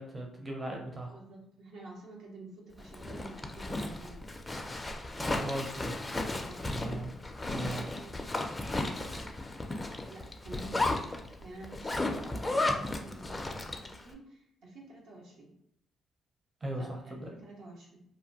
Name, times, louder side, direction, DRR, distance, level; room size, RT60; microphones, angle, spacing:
voice 1, 0.0-1.2 5.2-6.0 6.7-7.1 7.5-7.8 11.9-12.0 16.6-17.4, right 1 dB, 25° right, 0 dB, 0.6 m, -38 dB
voice 2, 1.1-4.3 6.3-7.1 7.5-8.3 8.7-9.3 10.1-11.0 11.4-15.5 16.8-18.0, right 2 dB, 75° right, -2 dB, 0.8 m, -50 dB
Zipper (clothing), 2.8-14.0, left 2 dB, 20° left, 0.4 m, -34 dB
2.7 x 2.1 x 2.8 m, 0.77 s
cardioid pair, 90°, 0 cm